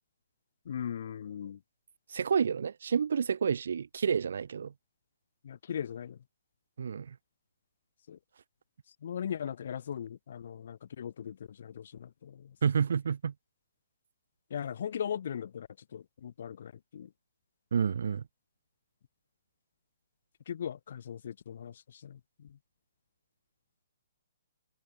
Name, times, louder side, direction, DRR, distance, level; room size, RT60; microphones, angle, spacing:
voice 1, 0.6-1.6 5.4-6.2 8.1-8.2 9.0-12.5 14.5-17.1 20.5-22.6, left 8 dB, 60° left, 5.1 m, -39 dB
voice 2, 2.1-4.7 6.8-7.1 12.6-13.3 17.7-18.2, right 6 dB, 65° right, 3.2 m, -29 dB
hypercardioid pair, 135°, 0 cm